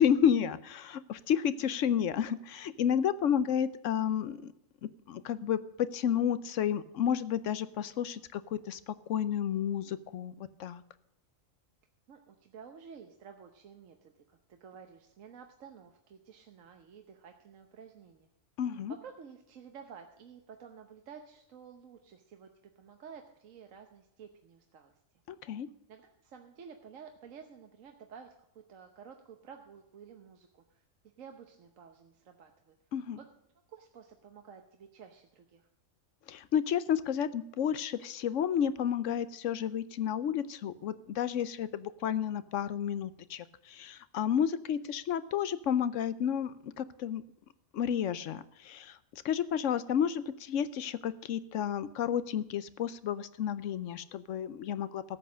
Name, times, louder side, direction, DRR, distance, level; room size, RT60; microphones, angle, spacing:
voice 1, 0.0-4.5 5.1-5.6 5.9-10.8 18.6-18.9 25.3-25.7 32.9-33.2 36.3-47.2 47.7-55.0, left 9 dB, 75° left, 15 dB, 1.0 m, -31 dB
voice 2, 12.1-18.3 19.0-22.5 22.8-24.9 25.9-28.3 28.7-30.6 31.2-32.7 33.2-33.3 33.7-35.7, right 7 dB, 75° right, 4 dB, 1.3 m, -52 dB
13.0 x 8.0 x 6.2 m, 0.81 s
omnidirectional pair, 1.4 m